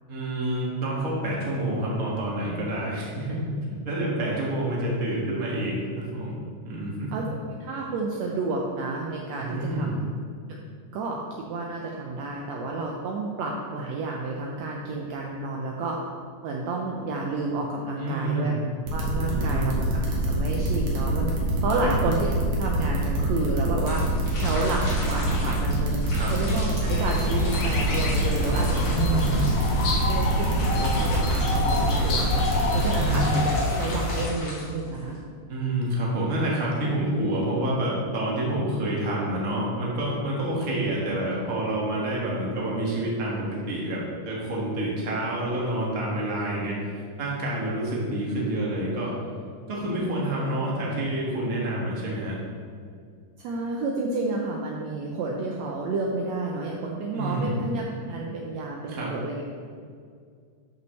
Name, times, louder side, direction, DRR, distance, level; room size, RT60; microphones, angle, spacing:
voice 1, 0.1-3.4 3.9-6.3 6.6-7.1 9.4-10.0 18.0-18.5 19.2-19.8 21.7-22.0 26.1-26.3 28.9-29.4 32.9-33.3 35.5-44.0 44.3-49.1 49.7-52.3 57.1-57.6 58.9-59.1, right 1 dB, 35° right, -5 dB, 1.7 m, -28 dB
voice 2, 7.6-9.9 10.5-10.6 10.9-16.0 16.4-18.5 18.9-21.3 21.6-22.3 22.6-24.0 24.4-29.2 30.1-35.2 53.4-59.4, right 3 dB, 75° right, -1 dB, 1.8 m, -30 dB
sound 1, 18.9-33.2, equal, 55° right, 2.2 m, -26 dB
sound 2, 23.8-35.2, left 2 dB, 50° left, 3.1 m, -39 dB
sound 3, 26.9-34.3, left 2 dB, 85° left, 0.9 m, -28 dB
12.5 x 5.6 x 3.2 m, 2.1 s
omnidirectional pair, 3.5 m